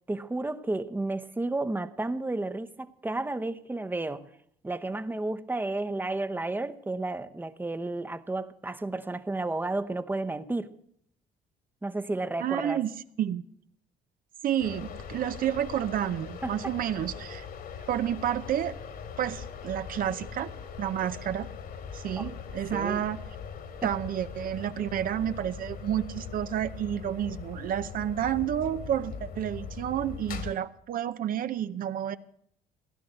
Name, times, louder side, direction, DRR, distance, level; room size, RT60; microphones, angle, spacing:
voice 1, 0.1-4.3 4.6-10.7 11.8-12.8 16.4-16.7 17.8-17.9 22.2-22.3 22.7-23.0 23.8-23.9, right 2 dB, 10° right, 0.9 m, -32 dB
voice 2, 12.4-12.9 13.2-13.4 14.4-17.5 17.9-18.8 19.2-20.5 20.8-21.5 21.9-23.2 23.8-32.2, right 10 dB, 55° right, 0.7 m, -30 dB
sound 1, 14.6-30.5, left 6 dB, 60° left, 2.5 m, -41 dB
16.5 x 11.0 x 7.8 m
cardioid pair, 110°, 17 cm